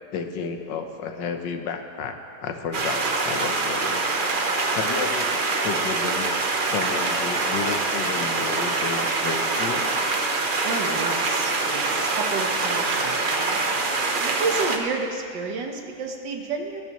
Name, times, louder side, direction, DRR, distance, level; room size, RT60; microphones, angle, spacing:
voice 1, 0.1-4.0 4.7-5.3 5.6-6.3 6.6-9.8, left 6 dB, 90° left, 6 dB, 1.6 m, -32 dB
sound 1, 2.7-14.8, right 3 dB, 40° right, 0.8 m, -24 dB
voice 2, 10.6-13.6 14.2-16.8, right 4 dB, 90° right, 2 dB, 1.9 m, -31 dB
21.0 x 11.5 x 3.1 m, 2.4 s
omnidirectional pair, 1.9 m